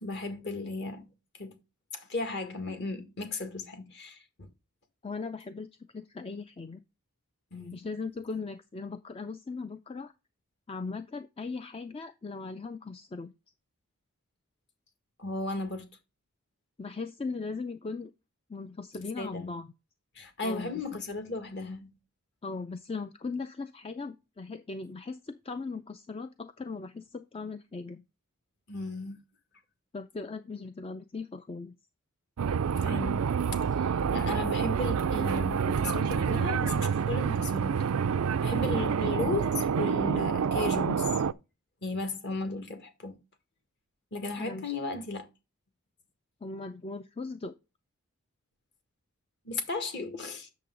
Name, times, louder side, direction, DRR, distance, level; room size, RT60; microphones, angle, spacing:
voice 1, 0.0-1.1 1.4-1.6 1.9-4.5 7.5-7.8 15.2-15.9 19.2-19.5 20.2-21.9 28.7-29.2 32.8-33.3 33.8-37.7 38.4-41.1 41.8-43.2 44.1-45.3 49.5-50.5, left 2 dB, 50° left, 1.9 m, -35 dB
voice 2, 5.0-5.7 5.9-6.8 7.7-10.1 10.7-13.3 16.8-18.1 18.5-19.7 20.4-20.7 22.4-28.0 29.9-31.8 44.4-44.7 46.4-47.5, left 4 dB, 25° left, 0.4 m, -38 dB
sound 1, 32.4-41.3, right 6 dB, 80° right, 0.4 m, -28 dB
8.4 x 6.8 x 3.8 m
head